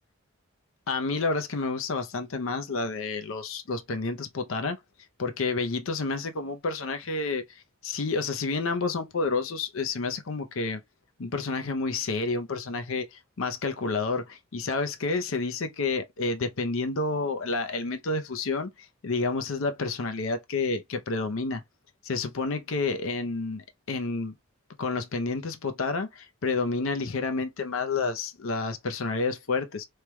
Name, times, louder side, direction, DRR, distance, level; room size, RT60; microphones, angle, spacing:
voice 1, 0.9-4.8 5.2-10.8 11.2-21.6 22.0-24.3 24.8-29.9, left 3 dB, 70° left, 0.6 m, -30 dB
3.2 x 2.2 x 2.9 m
head